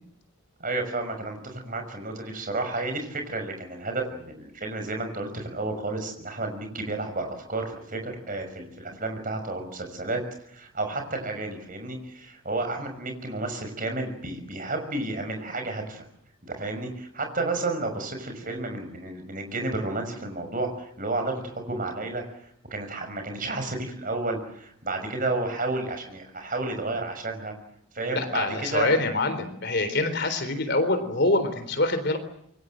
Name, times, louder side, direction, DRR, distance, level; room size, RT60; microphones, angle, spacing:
voice 1, 0.6-10.2 10.5-16.0 16.5-22.2 22.7-27.5 27.9-28.9, right 2 dB, 40° right, 5 dB, 6.1 m, -31 dB
voice 2, 28.1-32.2, left 2 dB, 50° left, 9 dB, 3.9 m, -25 dB
26.5 x 23.5 x 7.8 m, 0.71 s
head